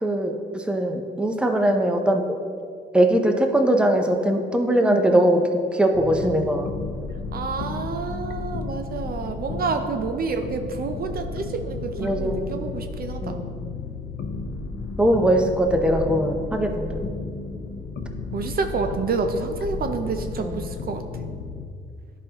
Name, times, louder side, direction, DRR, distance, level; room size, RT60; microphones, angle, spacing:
voice 1, 0.0-2.4 2.9-5.4 5.7-6.7 12.0-12.6 13.2-13.5 15.0-17.1 20.4-20.6, right 1 dB, 5° right, 4 dB, 0.7 m, -21 dB
voice 2, 4.8-5.2 7.3-13.4 18.3-21.2, right 4 dB, 50° right, 6 dB, 0.5 m, -29 dB
sound 1, 5.9-21.7, left 4 dB, 60° left, 0.6 m, -33 dB
11.0 x 5.0 x 2.9 m, 2.2 s
cardioid pair, 90°, 20 cm